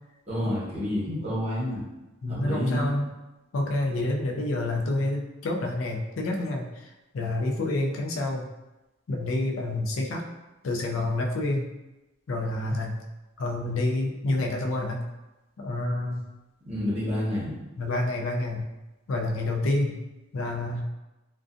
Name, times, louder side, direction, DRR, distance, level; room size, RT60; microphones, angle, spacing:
voice 1, 0.3-1.8 2.3-2.9 16.6-17.6, left 1 dB, 35° right, -8 dB, 1.0 m, -28 dB
voice 2, 2.2-3.1 3.5-6.7 7.1-8.5 9.1-10.2 10.6-11.6 12.3-13.0 13.4-15.0 15.6-16.2 17.8-18.7 19.1-20.0 20.3-20.9, left 2 dB, 85° left, 0 dB, 0.4 m, -28 dB
2.4 x 2.2 x 2.5 m, 1.0 s
head